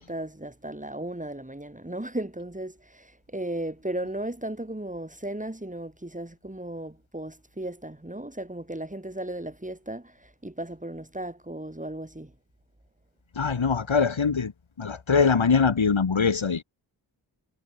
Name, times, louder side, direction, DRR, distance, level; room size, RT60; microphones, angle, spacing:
voice 1, 0.0-12.3, right 1 dB, 15° right, 6.5 m, -35 dB
voice 2, 13.4-14.5 14.8-16.6, left 5 dB, 85° left, 4.2 m, -22 dB
wide cardioid pair, 65°, 46 cm